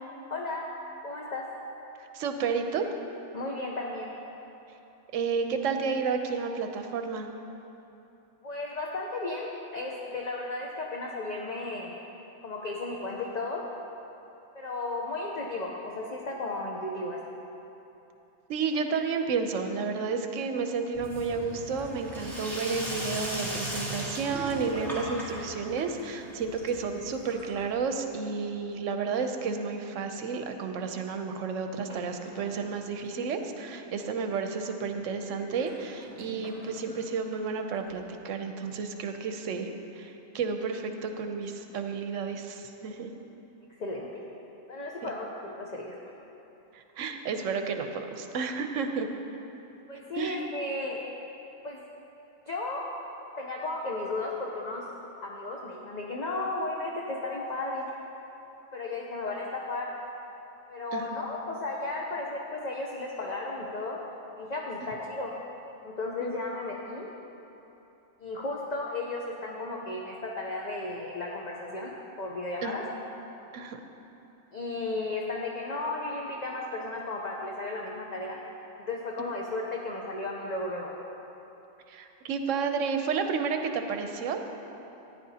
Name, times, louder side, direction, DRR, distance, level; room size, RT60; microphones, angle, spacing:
voice 1, 0.3-0.6 1.0-1.4 3.3-4.1 8.4-11.9 12.4-13.6 14.5-17.2 43.8-44.2 44.7-45.9 49.9-51.0 51.6-51.8 52.5-52.9 53.4-54.8 55.2-57.8 58.7-59.9 60.7-64.0 64.4-65.3 65.8-67.1 68.2-72.8 74.5-78.4 78.9-80.9, left 2 dB, 40° left, -2 dB, 0.8 m, -34 dB
voice 2, 2.1-2.9 5.1-7.3 18.5-39.7 39.9-43.1 45.0-45.1 46.7-49.1 50.2-50.4 60.9-61.2 66.2-66.3 72.6-72.7 73.5-73.8 81.9-84.4, right 5 dB, 80° right, 6 dB, 1.0 m, -31 dB
Sink (filling or washing), 20.9-27.7, right 1 dB, ahead, 2.3 m, -37 dB
sound 1, 31.9-33.4 35.2-38.1, left 1 dB, 30° right, 1.8 m, -51 dB
13.5 x 9.9 x 2.8 m, 3.0 s
omnidirectional pair, 1.3 m